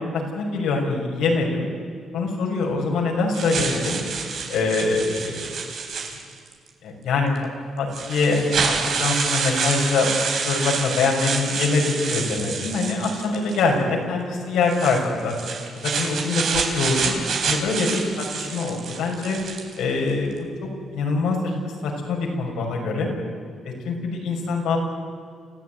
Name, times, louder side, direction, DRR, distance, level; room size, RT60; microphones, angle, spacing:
voice 1, 0.4-1.7 2.1-4.0 4.5-5.5 6.8-7.3 7.8-8.7 9.0-10.1 10.4-15.3 16.0-17.2 17.4-18.0 18.3-19.4 19.8-20.3 20.9-23.1 23.6-24.8, left 3 dB, 85° left, 0 dB, 6.1 m, -24 dB
sound 1, 3.3-6.5 7.4-7.5 7.9-13.7 14.6-19.8, right 5 dB, 65° right, 4.0 m, -27 dB
28.0 x 15.0 x 9.5 m, 2.1 s
cardioid pair, 90°, 0 cm